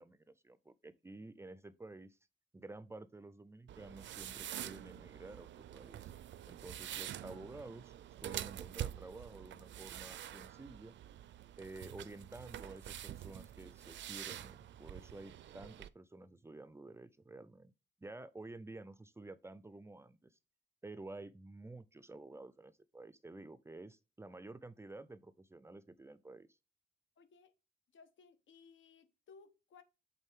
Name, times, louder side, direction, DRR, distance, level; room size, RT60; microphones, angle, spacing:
voice 1, 0.0-2.2 2.5-6.1 6.5-7.9 8.2-10.9 11.6-17.7 18.0-20.4 20.8-26.5, right 2 dB, 15° right, 0.3 m, -51 dB
sound 1, 3.7-15.9, right 12 dB, 75° right, 0.4 m, -47 dB
voice 2, 27.2-27.5 27.9-29.8, left 5 dB, 90° left, 1.1 m, -61 dB
8.3 x 3.9 x 3.5 m
wide cardioid pair, 180°, 19 cm